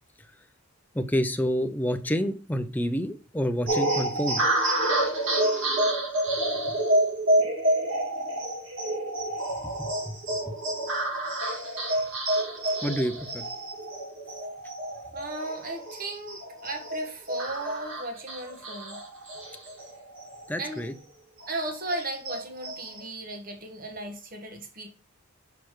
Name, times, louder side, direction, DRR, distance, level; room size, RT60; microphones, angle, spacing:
voice 1, 0.9-4.4 9.8-10.1 12.8-13.4 20.5-20.9, equal, 10° left, 0.5 m, -28 dB
sound 1, 3.7-20.6 20.9-21.0 21.4-23.0, right 1 dB, 60° right, 2.3 m, -28 dB
voice 2, 15.1-19.0 20.6-20.8 21.5-24.9, right 2 dB, 40° right, 1.5 m, -36 dB
6.7 x 5.8 x 3.1 m
head